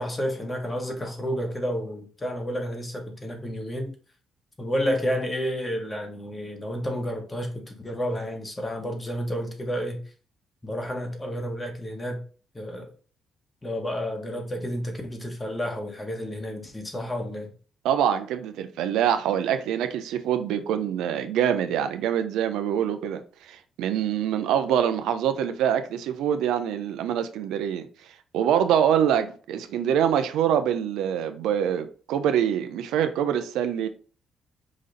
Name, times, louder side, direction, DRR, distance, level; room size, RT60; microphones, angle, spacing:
voice 1, 0.0-3.9 4.6-10.0 10.6-12.2 12.5-12.9 13.6-17.5, equal, 20° left, 1.3 m, -30 dB
voice 2, 17.8-27.9 28.3-33.9, right 9 dB, 90° right, 0.5 m, -25 dB
5.1 x 2.5 x 3.9 m
cardioid pair, 90°, 0 cm